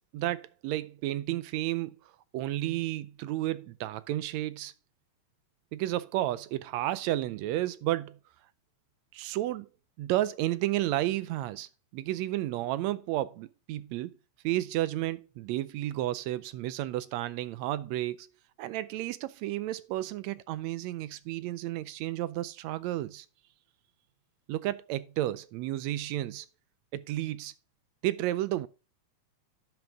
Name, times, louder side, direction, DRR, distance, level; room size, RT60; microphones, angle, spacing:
voice 1, 0.1-2.0 2.3-4.7 5.7-8.2 9.1-9.7 10.0-14.1 14.4-18.3 18.6-23.3 24.5-26.5 26.9-27.5 28.0-28.7, right 15 dB, 80° right, 1.7 m, -32 dB
10.5 x 6.0 x 3.5 m
omnidirectional pair, 3.3 m